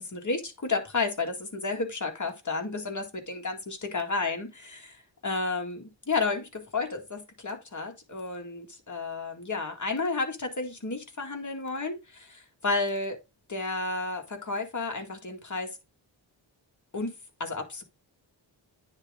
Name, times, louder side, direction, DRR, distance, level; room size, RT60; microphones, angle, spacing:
voice 1, 0.1-5.0 5.2-13.2 13.5-15.8 16.9-17.1 17.4-17.8, left 3 dB, 40° left, 2.0 m, -32 dB
9.6 x 3.7 x 3.6 m
wide cardioid pair, 70°, 45 cm